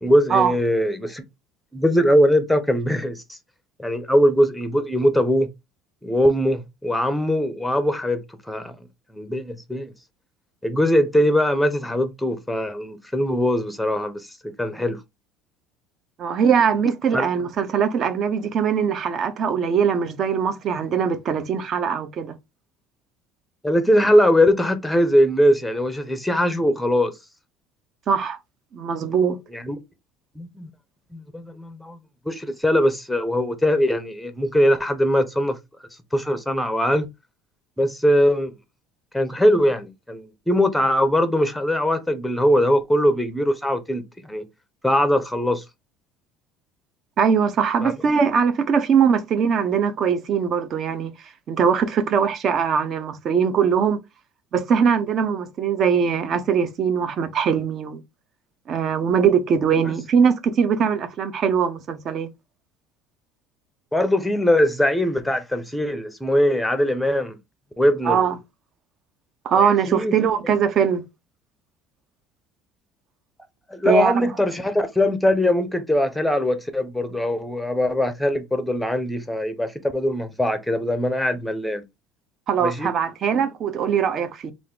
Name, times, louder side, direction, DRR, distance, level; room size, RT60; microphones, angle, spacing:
voice 1, 0.0-1.2 1.7-3.2 3.8-5.5 6.0-8.2 8.5-8.8 9.1-9.9 10.6-14.3 14.6-15.0 17.1-17.3 23.6-27.1 29.5-29.8 30.4-30.7 31.1-32.0 32.3-35.6 36.1-37.1 37.8-38.5 39.1-44.5 44.8-45.6 47.8-48.0 63.9-67.4 67.8-68.2 69.6-70.1 73.7-81.8 82.6-82.9, equal, ahead, 0.7 m, -21 dB
voice 2, 16.2-22.3 28.1-28.4 28.7-29.4 47.2-51.1 51.5-54.0 54.5-58.0 58.7-62.3 68.1-68.4 69.4-71.0 73.9-74.3 82.5-84.5, right 7 dB, 45° right, 0.6 m, -21 dB
3.6 x 2.5 x 3.6 m
cardioid pair, 125°, 0 cm